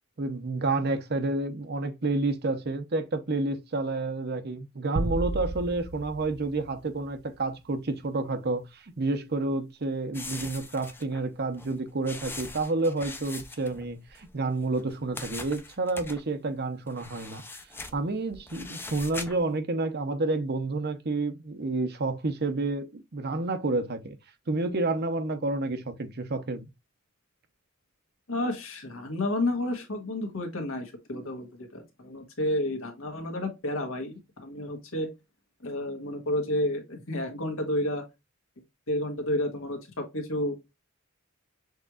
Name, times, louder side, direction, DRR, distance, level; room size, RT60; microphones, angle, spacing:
voice 1, 0.2-17.4 17.9-24.2 24.5-26.7, right 2 dB, 50° right, 0.7 m, -29 dB
sound 1, 5.0-7.5, right 3 dB, 85° right, 0.7 m, -34 dB
sound 2, 10.1-14.3 14.6-16.2 16.9-19.5, left 3 dB, 10° left, 0.6 m, -42 dB
voice 2, 28.3-35.1 35.6-38.0 38.9-40.6, left 1 dB, 75° left, 1.6 m, -31 dB
6.4 x 3.2 x 2.4 m
head